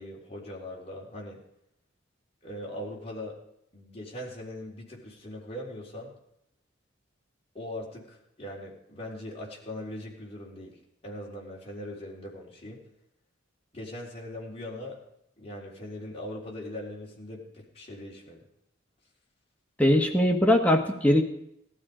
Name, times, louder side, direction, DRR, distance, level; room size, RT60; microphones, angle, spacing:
voice 1, 0.0-1.4 2.4-3.4 3.7-6.1 7.5-10.8 11.0-12.8 13.7-15.0 15.4-18.4, left 1 dB, 30° left, -3 dB, 3.9 m, -40 dB
voice 2, 19.8-21.2, left 1 dB, 5° left, 2 dB, 1.2 m, -21 dB
17.0 x 12.5 x 5.0 m, 0.77 s
head